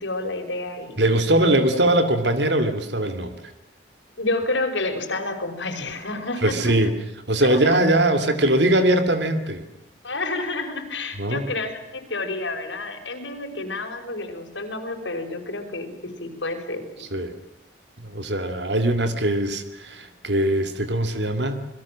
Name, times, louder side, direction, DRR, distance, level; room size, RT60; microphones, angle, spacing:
voice 1, 0.0-1.0 1.4-1.5 4.2-6.6 7.4-7.8 10.0-15.9 16.2-17.2, left 2 dB, 85° left, 4 dB, 5.6 m, -29 dB
voice 2, 1.0-3.4 6.4-6.9 7.3-9.6 11.2-11.4 17.0-17.3 18.0-21.6, right 1 dB, 70° right, 8 dB, 2.5 m, -21 dB
28.0 x 22.0 x 7.5 m, 0.86 s
head